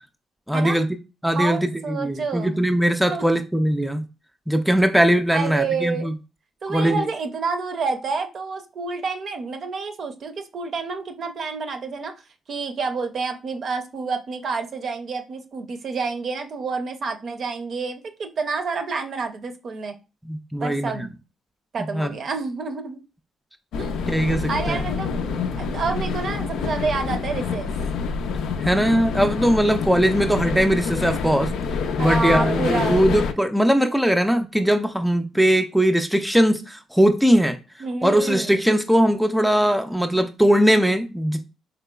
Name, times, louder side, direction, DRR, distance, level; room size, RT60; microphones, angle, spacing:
voice 1, 0.5-0.9 1.2-4.0 4.5-6.1 6.7-7.1 20.3-21.1 21.9-22.1 24.1-24.8 28.6-31.5 32.0-37.6 38.0-41.4, equal, ahead, 0.3 m, -20 dB
voice 2, 1.4-2.6 3.1-3.2 5.3-6.1 6.6-12.1 12.5-19.9 20.6-21.1 21.7-23.0 23.8-24.0 24.5-27.7 32.0-33.0 37.8-38.6, right 4 dB, 55° right, 0.6 m, -28 dB
sound 1, 23.7-33.3, left 5 dB, 85° left, 0.4 m, -27 dB
3.8 x 2.9 x 2.3 m
cardioid pair, 90°, 0 cm